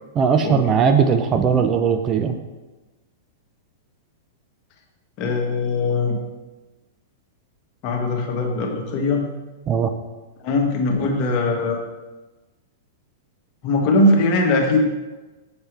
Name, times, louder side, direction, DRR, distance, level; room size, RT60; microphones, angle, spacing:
voice 1, 0.2-2.4 9.7-9.9, right 6 dB, 30° right, 7 dB, 0.5 m, -18 dB
voice 2, 5.2-6.2 7.8-9.3 10.4-11.8 13.6-14.8, left 2 dB, 45° left, 1 dB, 1.4 m, -20 dB
7.1 x 6.2 x 3.3 m, 1.2 s
hypercardioid pair, 105°, 0 cm